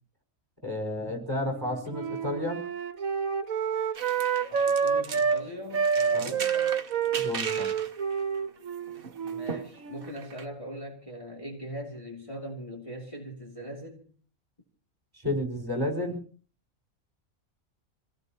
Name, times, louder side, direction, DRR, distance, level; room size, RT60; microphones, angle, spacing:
voice 1, 0.6-2.6 6.1-6.3 7.2-7.7 15.1-16.2, left 1 dB, 15° right, 2 dB, 5.2 m, -31 dB
Wind instrument woodwind instrument, 1.4-5.4 5.7-10.2, right 6 dB, 75° right, 1.5 m, -28 dB
sound 1, 3.9-5.4 5.7-10.4, right 5 dB, 45° right, 1.1 m, -39 dB
voice 2, 4.5-6.8 9.2-14.1, equal, 20° left, -2 dB, 2.7 m, -41 dB
27.0 x 17.5 x 2.9 m, 0.40 s
omnidirectional pair, 1.5 m